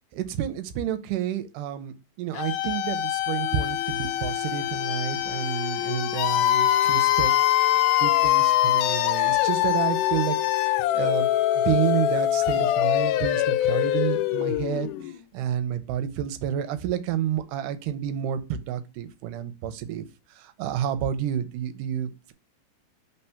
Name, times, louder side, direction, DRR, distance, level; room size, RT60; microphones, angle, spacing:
voice 1, 0.1-7.3 8.0-11.3 11.7-14.9 15.3-20.1 20.4-22.3, right 10 dB, 85° right, 11 dB, 2.2 m, -30 dB
sound 1, 2.4-15.2, left 13 dB, 80° left, 2.0 m, -23 dB
4.4 x 4.0 x 5.6 m, 0.28 s
omnidirectional pair, 3.7 m